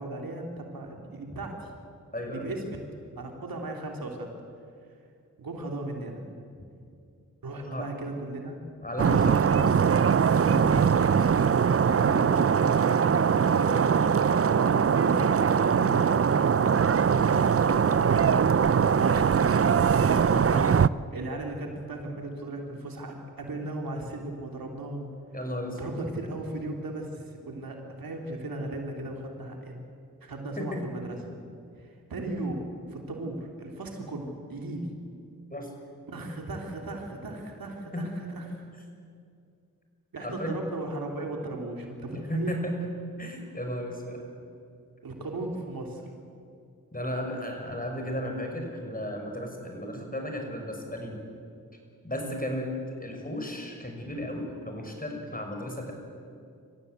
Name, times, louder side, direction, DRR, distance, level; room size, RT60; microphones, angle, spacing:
voice 1, 0.0-1.7 2.3-2.9 3.2-4.3 5.4-6.2 7.4-8.6 9.3-9.7 11.8-15.2 16.0-18.3 18.8-20.4 21.1-25.1 25.7-29.8 30.2-31.2 31.8-34.9 36.1-38.7 40.1-42.6 45.0-46.1 52.2-52.4, right 2 dB, 80° right, 2 dB, 3.2 m, -37 dB
voice 2, 2.1-2.5 7.6-7.9 8.8-9.7 10.3-10.8 11.1-11.2 15.7-16.0 20.3-20.8 25.3-26.0 30.6-30.9 35.5-35.7 37.9-38.1 40.2-40.6 42.1-42.7 43.2-44.2 46.9-51.2 52.0-55.9, equal, 25° left, 2 dB, 6.1 m, -34 dB
sound 1, 9.0-20.9, right 7 dB, 40° right, 0.6 m, -22 dB
26.5 x 15.0 x 8.4 m, 2.4 s
cardioid pair, 40°, 35 cm